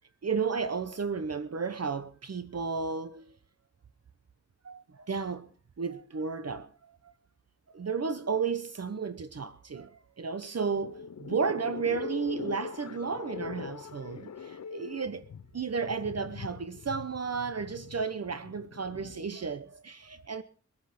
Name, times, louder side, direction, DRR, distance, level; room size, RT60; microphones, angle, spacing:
voice 1, 0.2-3.3 4.6-5.5 5.8-7.1 7.7-15.2 15.5-20.4, right 5 dB, 55° right, 0.9 m, -33 dB
sound 1, 10.6-19.3, left 6 dB, 65° left, 0.7 m, -42 dB
22.5 x 8.5 x 5.8 m
wide cardioid pair, 105°, 30 cm